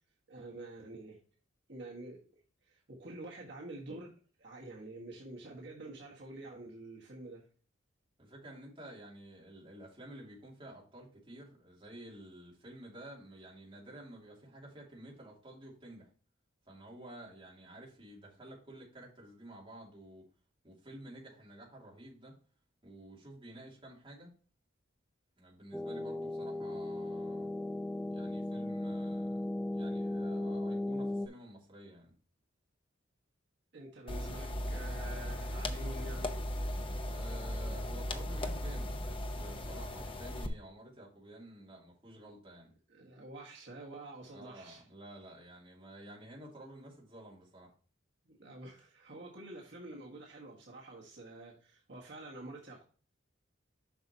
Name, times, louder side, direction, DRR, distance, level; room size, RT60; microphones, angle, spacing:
voice 1, 0.3-1.2 1.7-2.2 2.6-4.1 4.4-7.4 33.7-36.4 42.9-44.8 48.2-52.8, right 2 dB, 60° right, 1.6 m, -48 dB
voice 2, 8.2-16.1 16.7-20.3 20.6-22.4 22.8-24.3 25.4-27.5 28.1-29.4 29.7-32.1 37.0-42.7 44.3-47.7, right 1 dB, 25° right, 2.8 m, -51 dB
sound 1, 25.7-31.3, left 1 dB, 5° left, 0.3 m, -36 dB
sound 2, 34.1-40.5, left 1 dB, 25° left, 0.7 m, -37 dB
7.6 x 5.8 x 2.8 m
head